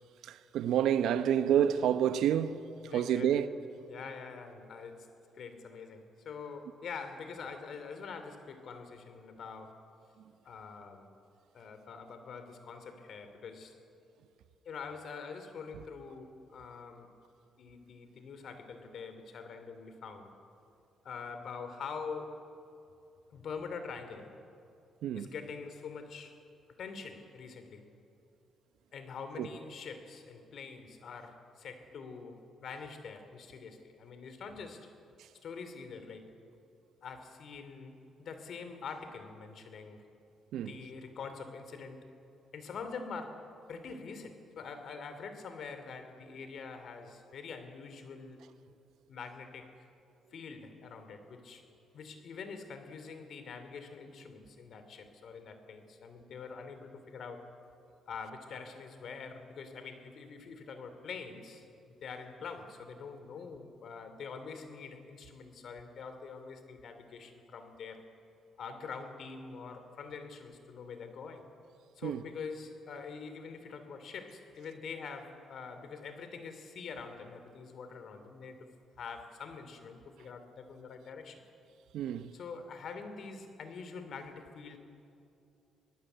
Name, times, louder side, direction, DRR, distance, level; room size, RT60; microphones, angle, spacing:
voice 1, 0.3-2.6 2.9-3.5 25.0-25.3 29.4-29.5 40.5-40.7 72.0-72.2 81.9-82.3, right 10 dB, 80° right, 1.0 m, -28 dB
voice 2, 2.8-3.4 3.9-5.1 5.3-9.8 10.4-11.1 11.5-13.7 14.6-17.1 17.6-20.4 21.0-22.4 23.3-24.3 25.2-26.4 26.8-27.8 28.9-34.9 35.4-36.3 37.0-40.0 40.6-42.1 42.5-48.4 49.1-49.9 50.3-51.7 51.9-57.5 58.1-61.6 62.0-68.0 68.6-71.5 71.9-78.7 79.0-81.4 82.3-84.8, left 5 dB, 65° left, 3.0 m, -45 dB
25.0 x 19.5 x 8.1 m
cardioid pair, 90°, 0 cm